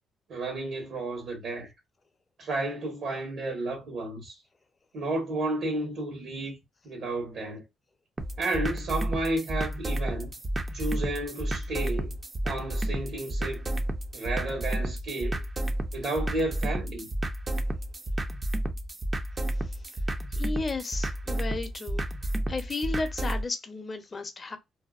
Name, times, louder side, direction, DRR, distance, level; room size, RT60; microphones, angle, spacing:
voice 1, 0.3-1.7 2.4-4.3 4.9-6.5 6.8-7.6 8.4-10.3 10.7-12.2 12.4-13.6 14.1-15.4 15.9-17.1, right 2 dB, 70° right, 1.2 m, -32 dB
sound 1, 8.2-23.4, right 1 dB, 30° right, 0.5 m, -31 dB
voice 2, 20.3-22.0 22.5-24.6, left 3 dB, 35° left, 0.6 m, -33 dB
2.7 x 2.0 x 2.3 m
cardioid pair, 90°, 0 cm